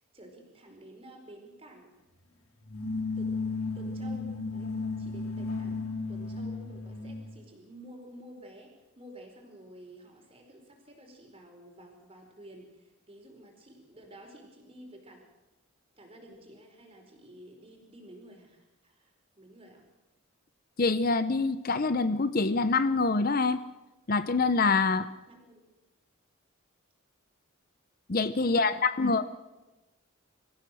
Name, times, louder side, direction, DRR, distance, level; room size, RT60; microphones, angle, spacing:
voice 1, 0.0-1.9 3.2-3.4 3.7-5.8 6.1-15.2 16.0-19.8 25.3-25.6 28.4-29.3, right 1 dB, 25° right, 2 dB, 4.8 m, -51 dB
sound 1, 2.6-7.4, left 3 dB, 90° left, 3.7 m, -34 dB
voice 2, 20.8-23.6 24.1-25.1 28.1-29.2, left 3 dB, 45° left, 12 dB, 0.7 m, -25 dB
25.0 x 15.0 x 7.7 m, 1.1 s
head